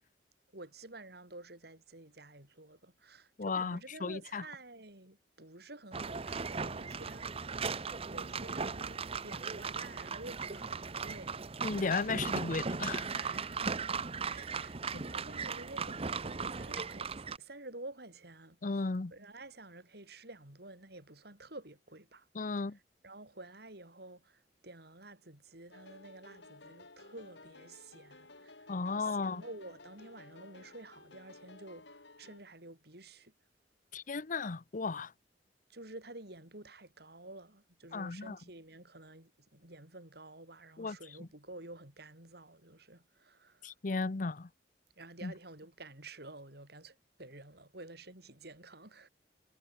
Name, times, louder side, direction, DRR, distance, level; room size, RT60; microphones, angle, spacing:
voice 1, 0.5-7.7 8.1-11.4 12.1-12.5 13.1-13.9 14.3-18.8 19.1-22.3 23.0-33.3 35.7-43.7 45.0-49.1, right 2 dB, 60° right, 6.7 m, -51 dB
voice 2, 3.4-4.4 11.6-13.1 18.6-19.1 22.3-22.8 28.7-29.4 33.9-35.1 37.9-38.4 40.8-41.0 43.6-44.5 45.2-45.3, left 4 dB, 45° left, 0.7 m, -35 dB
sound 1, 5.9-17.4, right 5 dB, 35° right, 0.8 m, -37 dB
sound 2, 25.7-32.4, left 3 dB, 80° left, 4.5 m, -55 dB
head